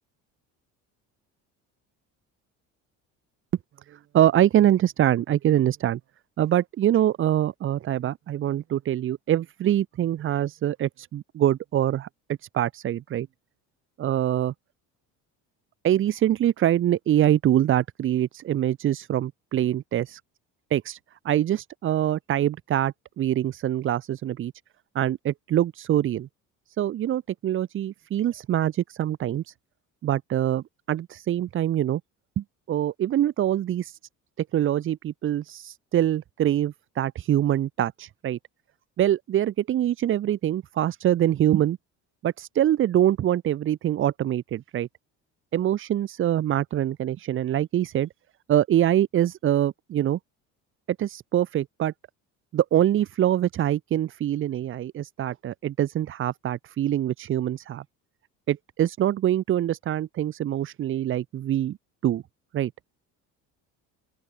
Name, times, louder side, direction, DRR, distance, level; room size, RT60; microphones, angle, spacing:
voice 1, 3.9-6.0 6.4-12.1 12.4-13.3 14.0-14.5 15.8-20.2 20.7-21.0 21.2-24.5 24.9-26.3 26.8-29.5 30.0-32.0 32.4-34.0 34.5-38.4 39.0-41.8 42.2-44.9 45.5-48.1 48.5-50.2 51.0-51.9 52.5-57.8 58.5-61.8 62.0-62.2 62.5-62.7, right 11 dB, 40° right, 1.0 m, -24 dB
open air
cardioid pair, 155°, 32 cm